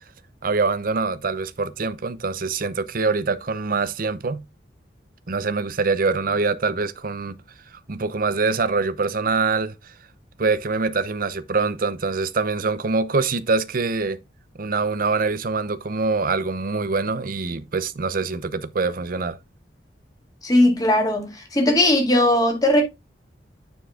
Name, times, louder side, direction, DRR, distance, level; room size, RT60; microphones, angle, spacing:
voice 1, 0.4-4.4 5.3-7.4 7.9-9.7 10.4-14.2 14.6-19.4, right 4 dB, 50° right, 0.7 m, -24 dB
voice 2, 20.4-22.8, left 1 dB, 20° left, 2.1 m, -18 dB
9.2 x 4.6 x 3.6 m
head